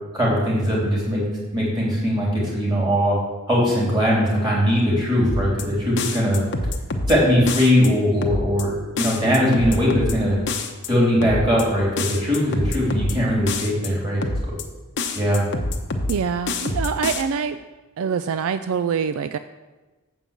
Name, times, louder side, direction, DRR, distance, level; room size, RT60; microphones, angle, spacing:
voice 1, 0.1-1.2 1.5-3.2 3.5-6.4 7.1-10.4 10.9-14.2 15.1-15.4, equal, 20° right, -6 dB, 3.4 m, -20 dB
sound 1, 5.2-5.6 6.0-7.1 7.5-7.9 8.2-8.6 9.0-10.1 10.5-10.9 11.2-11.6 12.0-13.1 13.5-13.9 14.2-14.6 15.0-16.1 16.5-17.2, left 2 dB, 55° left, 0.8 m, -26 dB
voice 2, 16.1-17.6 18.0-19.4, right 6 dB, 70° right, 10 dB, 0.3 m, -25 dB
7.7 x 5.4 x 7.2 m, 1.2 s
head